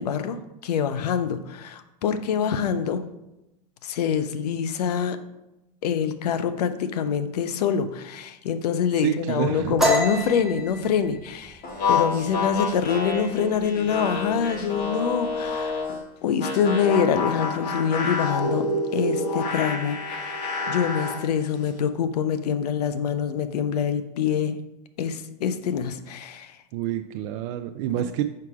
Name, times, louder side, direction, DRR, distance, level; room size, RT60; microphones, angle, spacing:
voice 1, 0.0-3.0 3.8-5.2 5.8-11.6 11.9-18.7 18.9-24.6 25.0-26.5 27.9-28.1, left 7 dB, 80° left, 10 dB, 0.6 m, -25 dB
voice 2, 9.0-9.8 26.7-28.2, right 12 dB, 55° right, 7 dB, 0.4 m, -27 dB
sound 1, 9.8-13.2 13.6-13.9 14.3-14.8 15.0-15.8, equal, ahead, 1.4 m, -27 dB
sound 2, 11.6-16.0 16.4-21.2, left 3 dB, 45° left, 1.8 m, -28 dB
4.7 x 4.7 x 4.8 m, 0.92 s
hypercardioid pair, 105°, 20 cm